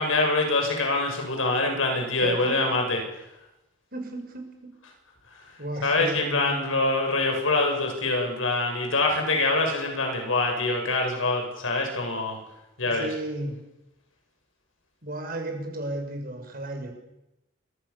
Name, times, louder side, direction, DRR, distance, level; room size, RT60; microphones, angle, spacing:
voice 1, 0.0-3.0 5.8-12.4 12.8-13.1, left 2 dB, 85° left, 3 dB, 7.7 m, -25 dB
voice 2, 2.2-2.8 3.9-4.7 5.6-6.8 12.8-13.6 15.0-16.9, right 1 dB, 45° right, 4 dB, 6.7 m, -34 dB
28.5 x 25.5 x 7.3 m, 0.93 s
head